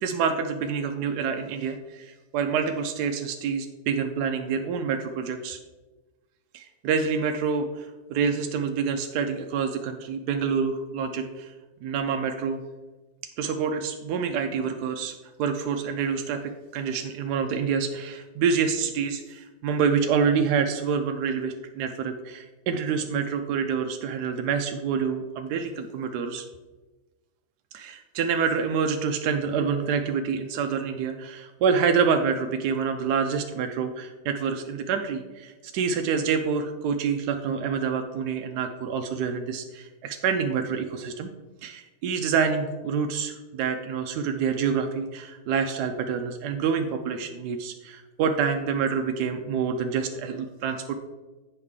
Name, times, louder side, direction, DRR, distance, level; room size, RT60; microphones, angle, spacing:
voice 1, 0.0-5.6 6.5-11.5 11.8-12.6 13.4-26.5 27.7-41.3 41.6-50.9, right 6 dB, 70° right, 5 dB, 1.0 m, -27 dB
8.2 x 5.5 x 3.6 m, 1.2 s
omnidirectional pair, 2.0 m